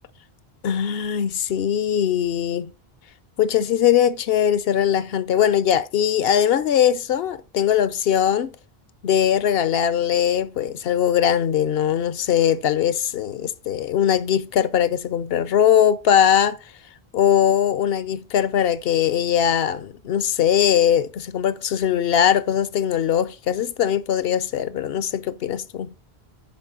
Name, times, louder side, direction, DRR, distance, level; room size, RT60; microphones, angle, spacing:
voice 1, 0.6-2.7 3.4-8.5 9.0-16.6 17.1-25.9, left 9 dB, 70° left, 0.9 m, -20 dB
9.5 x 4.3 x 5.5 m
omnidirectional pair, 1.1 m